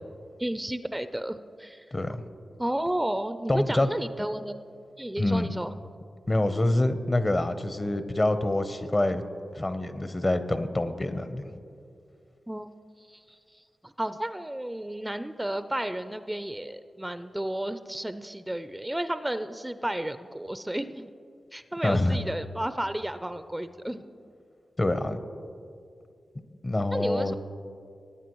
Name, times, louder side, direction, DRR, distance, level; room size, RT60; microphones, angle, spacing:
voice 1, 0.4-1.8 2.6-4.6 5.0-5.7 12.5-12.7 13.1-21.1 21.5-24.0 26.9-27.3, right 1 dB, 15° right, 11 dB, 0.4 m, -32 dB
voice 2, 1.9-2.2 3.5-3.9 5.2-5.5 6.3-9.2 9.5-11.6 21.8-22.2 24.8-25.2 26.6-27.4, left 1 dB, 35° left, 10 dB, 0.8 m, -26 dB
19.5 x 9.0 x 3.0 m, 2.4 s
cardioid pair, 40°, 0 cm